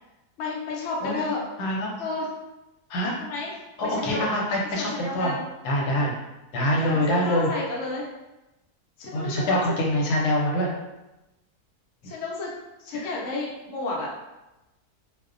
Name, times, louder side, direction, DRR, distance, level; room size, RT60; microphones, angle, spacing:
voice 1, 0.4-1.4 2.0-2.3 3.2-3.5 3.8-4.3 4.7-5.4 6.5-8.1 9.0-9.7 12.0-12.5 12.8-14.1, left 3 dB, 65° left, -3 dB, 0.8 m, -31 dB
voice 2, 1.6-1.9 2.9-3.2 3.8-5.3 5.6-6.1 6.5-7.5 9.1-10.7 13.0-13.1, equal, 80° left, -2 dB, 1.1 m, -24 dB
2.6 x 2.1 x 2.4 m, 0.99 s
omnidirectional pair, 1.7 m